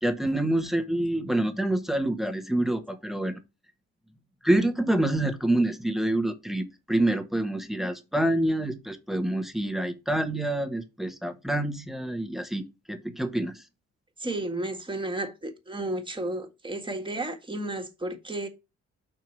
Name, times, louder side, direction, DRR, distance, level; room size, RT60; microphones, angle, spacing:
voice 1, 0.0-3.4 4.4-13.6, right 1 dB, ahead, 1.3 m, -27 dB
voice 2, 14.2-18.5, right 2 dB, 15° right, 1.8 m, -32 dB
5.8 x 4.7 x 4.3 m
cardioid pair, 90°, 30 cm